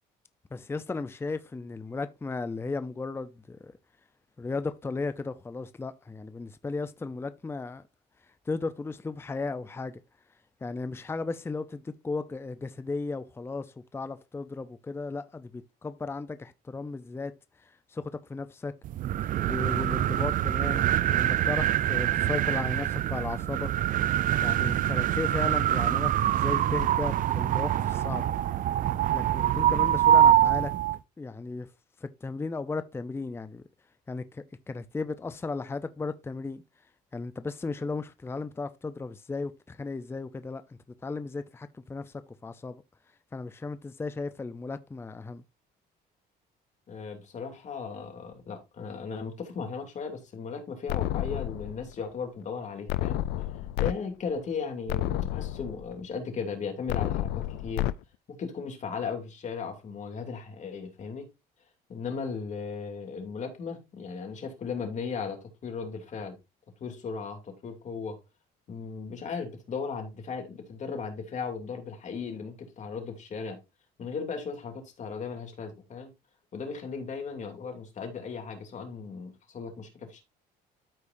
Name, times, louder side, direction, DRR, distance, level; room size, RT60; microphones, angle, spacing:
voice 1, 0.5-3.7 4.4-7.8 8.5-10.0 10.6-17.3 17.6-18.7 19.5-23.7 24.4-28.3 29.1-30.7 31.2-31.7 32.0-33.6 34.1-36.6 37.1-40.6 41.0-42.1 42.4-42.8 43.3-45.4, left 3 dB, 15° left, 0.6 m, -35 dB
sound 1, 18.8-31.0, right 11 dB, 55° right, 0.5 m, -25 dB
voice 2, 46.9-53.2 53.8-57.9 58.3-61.2 61.9-66.4 66.8-68.2 68.7-73.6 74.0-76.1 76.5-80.2, left 5 dB, 45° left, 2.7 m, -36 dB
sound 2, 50.9-51.9 52.9-53.9 54.4-54.5 54.9-55.9 56.9-57.9, left 14 dB, 90° left, 0.5 m, -30 dB
13.0 x 4.9 x 2.6 m
cardioid pair, 110°, 17 cm